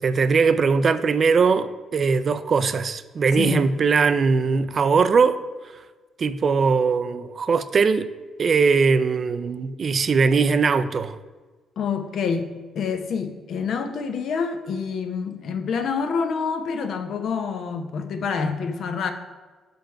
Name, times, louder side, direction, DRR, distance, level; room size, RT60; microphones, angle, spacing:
voice 1, 0.0-5.4 6.2-8.1 8.4-11.2, right 5 dB, 45° right, 0.4 m, -20 dB
voice 2, 11.8-12.5 12.7-19.1, left 5 dB, 65° left, 0.7 m, -27 dB
6.3 x 5.3 x 4.4 m
cardioid pair, 90°, 0 cm